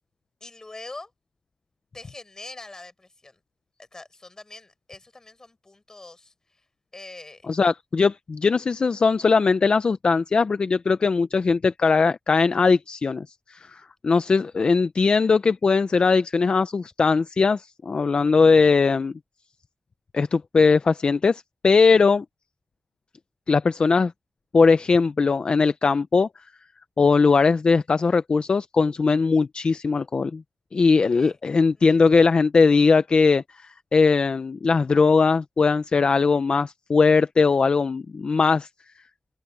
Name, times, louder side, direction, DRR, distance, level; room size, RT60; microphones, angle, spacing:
voice 1, 0.4-1.1 1.9-3.4 3.8-6.6 6.9-7.5 21.9-22.0 31.0-31.4 31.8-32.3, left 2 dB, 25° left, 5.1 m, -44 dB
voice 2, 7.5-19.1 20.1-22.2 23.5-24.1 24.5-26.3 27.0-30.4 30.7-38.7, left 4 dB, 50° left, 0.5 m, -20 dB
wide cardioid pair, 135°, 2 cm